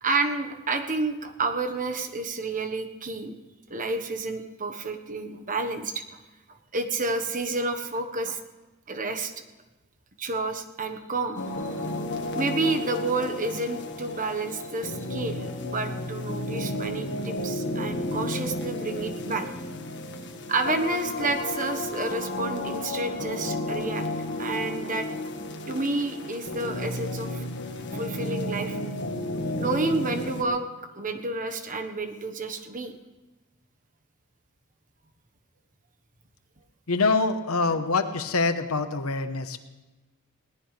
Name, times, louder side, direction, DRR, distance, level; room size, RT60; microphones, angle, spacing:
voice 1, 0.0-3.3 3.7-6.0 6.7-8.4 8.9-9.3 10.2-11.4 12.3-19.5 20.5-24.1 24.4-25.1 25.7-27.4 27.9-28.8 29.6-33.0, right 3 dB, 40° right, 7 dB, 1.3 m, -30 dB
sound 1, 11.4-30.4, left 1 dB, 55° left, 1.7 m, -32 dB
voice 2, 36.9-39.6, left 3 dB, 80° left, 8 dB, 1.1 m, -25 dB
21.0 x 18.0 x 3.4 m, 1.1 s
head